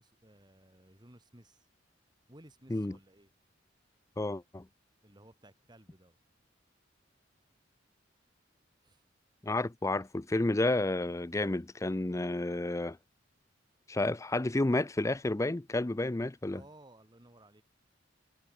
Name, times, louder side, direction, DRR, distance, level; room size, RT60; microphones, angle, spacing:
voice 1, 0.0-1.7 2.3-3.3 5.0-6.2 8.8-9.0 16.5-17.6, right 1 dB, 25° right, 4.5 m, -58 dB
voice 2, 4.2-4.7 9.4-13.0 13.9-16.6, left 2 dB, 15° left, 0.5 m, -31 dB
head